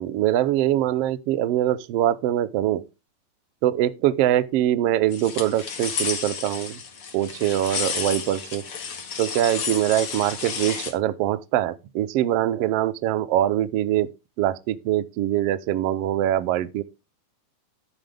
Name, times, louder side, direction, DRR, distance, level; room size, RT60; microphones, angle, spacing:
voice 1, 0.0-2.8 3.6-6.8 7.1-8.6 9.2-14.1 14.4-16.8, right 12 dB, 85° right, 1.4 m, -23 dB
sound 1, 5.1-10.9, left 6 dB, 45° left, 2.5 m, -31 dB
11.0 x 9.1 x 3.4 m
omnidirectional pair, 3.7 m